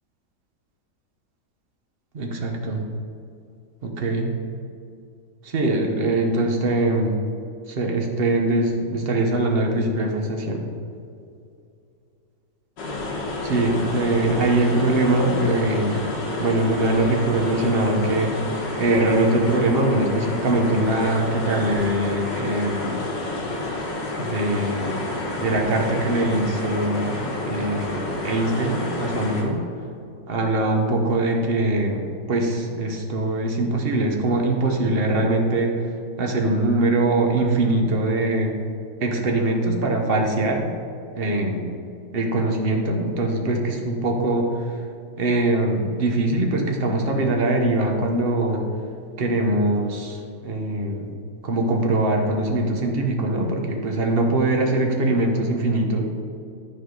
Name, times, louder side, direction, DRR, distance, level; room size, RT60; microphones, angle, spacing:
voice 1, 2.1-2.9 3.8-4.3 5.4-7.2 7.7-10.6 13.4-16.1 16.4-23.0 24.2-25.0 25.4-29.6 30.3-35.7 36.2-38.5 39.0-40.7 41.1-41.6 42.1-44.8 45.2-48.6 49.2-51.1 51.4-56.0, right 2 dB, 40° right, 2 dB, 1.0 m, -22 dB
sound 1, 12.8-29.4, left 2 dB, 90° left, 1.9 m, -29 dB
12.0 x 4.9 x 3.9 m, 2.5 s
omnidirectional pair, 1.9 m